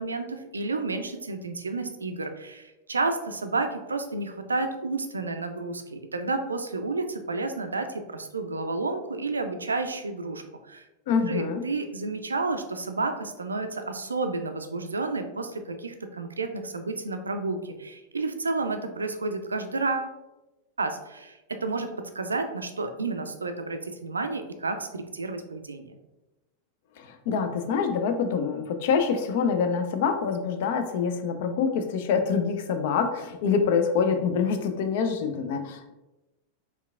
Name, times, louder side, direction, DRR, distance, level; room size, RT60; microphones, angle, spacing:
voice 1, 0.0-10.8 11.3-20.1 20.8-26.0, right 3 dB, 75° right, 7 dB, 0.4 m, -31 dB
voice 2, 11.1-11.6 27.0-35.9, left 6 dB, 50° left, 7 dB, 0.4 m, -26 dB
4.5 x 3.4 x 2.4 m, 1.0 s
figure-of-eight pair, 90°, 0 cm